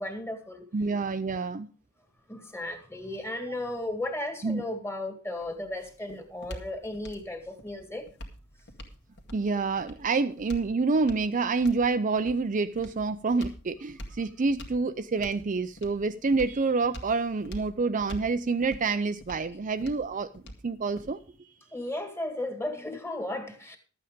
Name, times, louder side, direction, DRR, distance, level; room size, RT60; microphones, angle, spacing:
voice 1, 0.0-0.6 2.3-8.1 21.7-23.8, left 1 dB, 10° left, 2.0 m, -35 dB
voice 2, 0.7-1.7 4.4-4.6 9.3-20.3 20.6-21.5, right 4 dB, 40° right, 0.5 m, -27 dB
sound 1, 5.3-21.4, equal, 55° left, 2.1 m, -46 dB
12.5 x 8.6 x 5.1 m
head